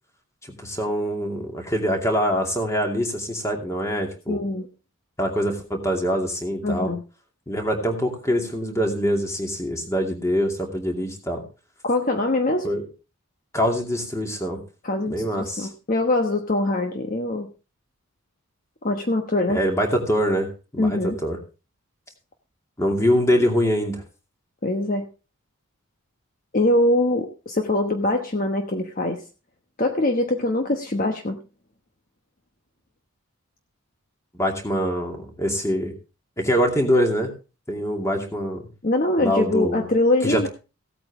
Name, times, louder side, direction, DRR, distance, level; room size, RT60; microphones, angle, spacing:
voice 1, 0.4-4.4 5.2-6.9 7.5-11.4 12.6-12.8 13.5-14.6 15.1-15.7 19.5-20.5 20.7-21.4 22.8-24.0 34.4-35.9 36.4-37.3 37.7-38.6 39.2-39.8 40.2-40.5, equal, 15° left, 2 dB, 2.5 m, -24 dB
voice 2, 4.3-4.7 6.6-7.0 11.8-12.7 14.8-17.5 18.8-19.6 20.8-21.2 24.6-25.1 26.5-29.2 29.8-31.4 38.8-40.5, left 2 dB, 40° left, 4 dB, 1.1 m, -23 dB
16.5 x 8.7 x 3.6 m, 0.31 s
head